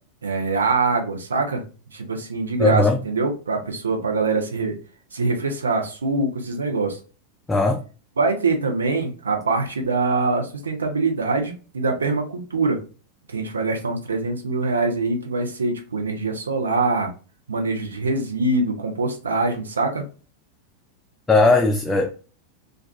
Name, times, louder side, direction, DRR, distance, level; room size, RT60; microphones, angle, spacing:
voice 1, 0.2-1.6 1.9-4.8 5.1-7.0 8.2-12.8 13.3-17.1 17.5-20.0, right 3 dB, 90° right, 0.6 m, -24 dB
voice 2, 2.6-3.0 7.5-7.8 21.3-22.1, left 2 dB, 15° left, 0.3 m, -18 dB
2.3 x 2.3 x 2.3 m
hypercardioid pair, 100°, 0 cm